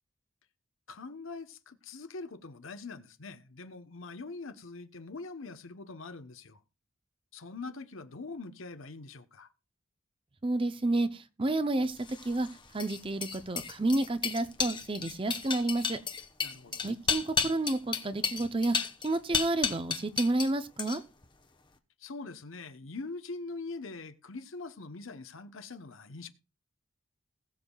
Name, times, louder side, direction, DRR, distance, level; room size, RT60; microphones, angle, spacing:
voice 1, 0.9-6.6 7.3-9.5 16.4-16.9 22.0-26.3, left 3 dB, 75° left, 1.0 m, -43 dB
voice 2, 10.4-11.1 11.4-12.0 12.2-12.5 12.7-16.0 16.8-18.8 19.0-21.0, right 2 dB, 25° right, 0.6 m, -30 dB
sound 1, 12.0-20.5 20.8-21.3, left 6 dB, 25° left, 0.9 m, -33 dB
20.0 x 7.2 x 2.3 m
head